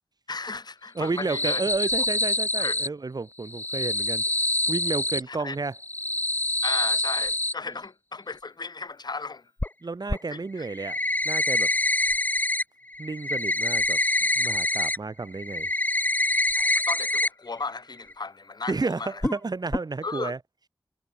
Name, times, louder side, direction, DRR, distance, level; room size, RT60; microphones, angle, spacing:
voice 1, 0.3-1.6 2.6-2.8 5.3-5.6 6.6-9.5 10.3-10.7 16.5-19.2 20.0-20.3, left 4 dB, 60° left, 1.1 m, -35 dB
voice 2, 0.9-4.2 4.7-5.7 9.8-11.0 11.2-11.7 13.0-14.0 14.4-15.7 18.7-20.4, right 3 dB, 55° right, 1.5 m, -31 dB
sound 1, 1.1-2.9 3.5-5.2 5.8-7.5 9.6-9.7 10.1-10.2 10.6-12.6 12.9-15.0 15.3-17.3 17.6-17.7 18.1-18.2 19.2-19.4 19.7-19.8, left 1 dB, 20° left, 1.2 m, -25 dB
wide cardioid pair, 70°, 8 cm